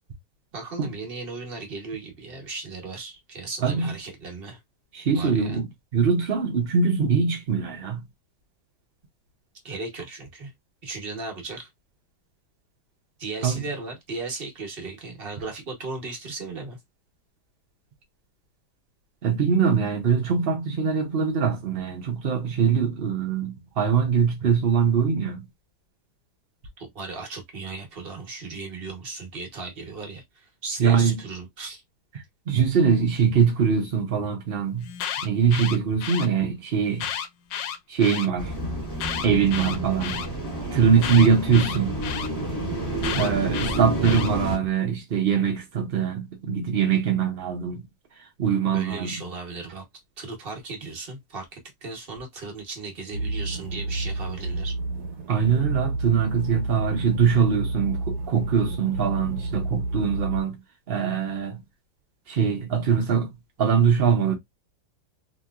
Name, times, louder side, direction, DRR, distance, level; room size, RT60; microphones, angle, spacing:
voice 1, 0.5-4.6 5.1-5.5 9.6-10.5 10.8-11.7 13.2-16.8 26.8-31.8 48.7-49.8 50.2-54.7, right 3 dB, 40° right, 1.0 m, -36 dB
voice 2, 3.6-3.9 4.9-8.0 13.4-13.6 19.2-25.4 30.8-31.2 32.5-34.9 35.2-37.1 37.9-38.8 39.2-40.2 40.7-42.0 43.2-47.9 48.4-49.1 55.3-60.6 60.9-61.6 62.3-63.3 63.6-64.4, right 6 dB, 75° right, 0.5 m, -22 dB
Alarm, 34.8-36.3 36.9-38.3 38.9-40.3 41.0-42.3 43.0-44.3, left 9 dB, 75° left, 1.2 m, -32 dB
sound 1, 38.4-44.6, right 1 dB, 20° left, 1.6 m, -30 dB
sound 2, 53.1-60.4, right 2 dB, 60° right, 1.3 m, -30 dB
2.9 x 2.9 x 2.3 m
omnidirectional pair, 2.0 m